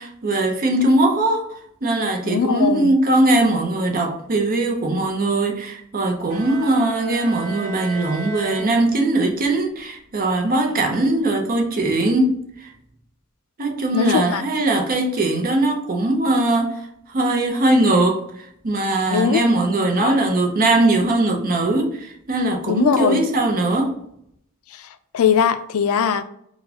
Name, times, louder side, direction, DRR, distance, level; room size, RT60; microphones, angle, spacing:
voice 1, 0.0-1.5 1.8-12.7 13.6-24.0, right 2 dB, 40° right, 0.6 m, -20 dB
voice 2, 2.2-2.9 13.9-14.4 19.1-19.4 20.0-20.2 22.7-23.2 25.1-26.2, left 7 dB, 85° left, 0.4 m, -20 dB
Bowed string instrument, 6.3-9.4, right 4 dB, 80° right, 1.2 m, -35 dB
4.0 x 2.3 x 2.8 m
head